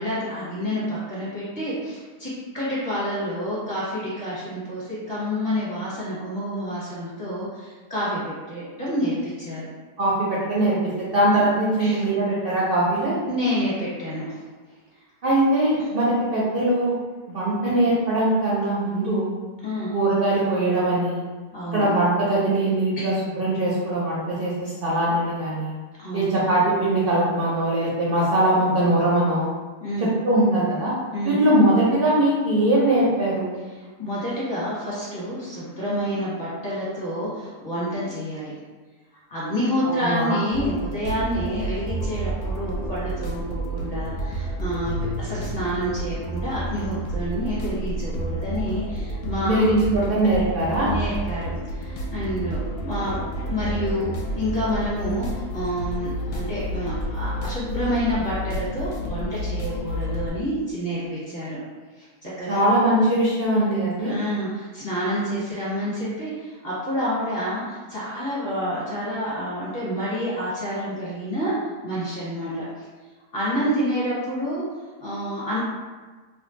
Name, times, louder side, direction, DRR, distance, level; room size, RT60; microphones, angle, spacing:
voice 1, 0.0-9.7 11.3-11.4 11.8-12.0 13.3-14.4 19.6-19.9 21.5-21.9 23.0-23.1 26.0-26.3 29.8-30.1 31.1-31.4 34.0-38.5 39.3-49.6 50.8-53.2 53.5-61.6 62.0-62.6 64.0-72.9 73.3-74.6 75.0-75.6, equal, 35° left, -9 dB, 1.1 m, -28 dB
voice 2, 10.0-13.2 15.2-17.0 17.3-19.4 19.9-21.2 21.7-25.7 26.1-29.5 30.0-30.9 31.2-33.4 39.8-40.4 49.4-50.9 62.5-64.1, right 1 dB, 60° right, -7 dB, 0.5 m, -21 dB
sound 1, 40.5-60.3, right 1 dB, 75° left, 1.0 m, -30 dB
2.7 x 2.2 x 3.7 m, 1.3 s
omnidirectional pair, 1.7 m